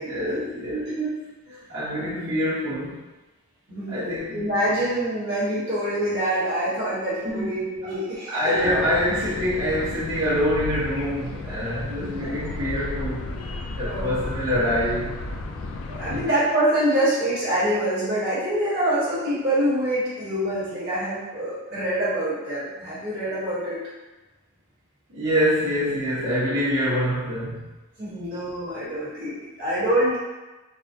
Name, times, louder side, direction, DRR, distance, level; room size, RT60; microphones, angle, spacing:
voice 1, 0.0-3.0 3.9-4.4 7.2-7.6 7.8-7.9 8.3-13.3 13.8-15.1 16.1-16.3 25.1-27.7, equal, 75° right, -12 dB, 1.1 m, -25 dB
voice 2, 3.7-8.8 12.0-12.4 13.8-14.1 15.9-23.8 28.0-30.2, right 1 dB, 50° right, -11 dB, 1.5 m, -25 dB
sound 1, 8.5-16.3, left 2 dB, 90° left, 0.4 m, -34 dB
4.0 x 2.2 x 2.7 m, 1.1 s
head